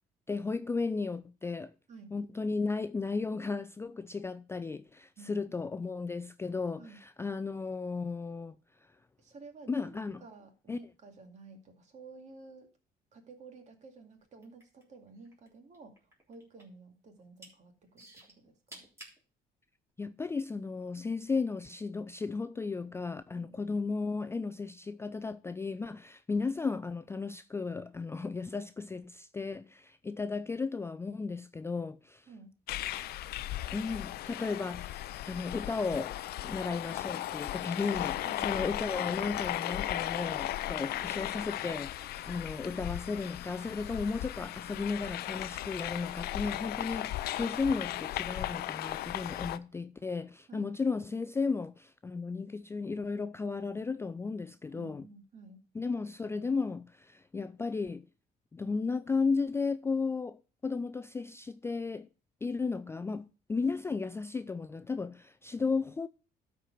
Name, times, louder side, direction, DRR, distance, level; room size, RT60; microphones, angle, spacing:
voice 1, 0.3-1.7 2.1-8.6 8.8-8.9 9.7-10.2 10.7-10.8 20.0-32.3 33.7-35.0 35.3-36.1 36.4-55.0 55.7-58.1 58.5-62.1 62.4-66.1, left 4 dB, 15° left, 0.3 m, -34 dB
voice 2, 5.2-5.5 6.8-7.0 9.2-12.7 13.1-18.9 23.4-23.6 32.3-32.5 38.2-38.6 50.5-50.7 54.7-55.6, right 4 dB, 45° right, 2.2 m, -52 dB
sound 1, 14.4-15.5 15.7-16.8 17.2-17.5 18.0-19.2 19.9-20.0, right 1 dB, 15° right, 3.6 m, -51 dB
sound 2, 32.7-49.6, left 14 dB, 70° left, 0.5 m, -36 dB
12.5 x 4.6 x 5.0 m
cardioid pair, 110°, 17 cm